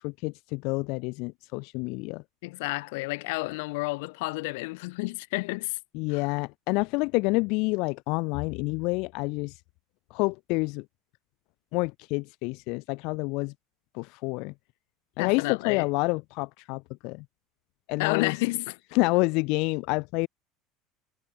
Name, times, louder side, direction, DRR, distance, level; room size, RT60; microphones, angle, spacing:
voice 1, 0.0-2.2 5.9-9.6 10.1-10.8 11.7-13.5 13.9-14.5 15.2-17.3 17.9-18.4 18.9-20.3, left 27 dB, 60° left, 1.9 m, -28 dB
voice 2, 2.4-5.8 6.1-6.3 15.2-15.9 18.0-18.8, left 25 dB, 80° left, 3.8 m, -30 dB
cardioid pair, 150°, 0 cm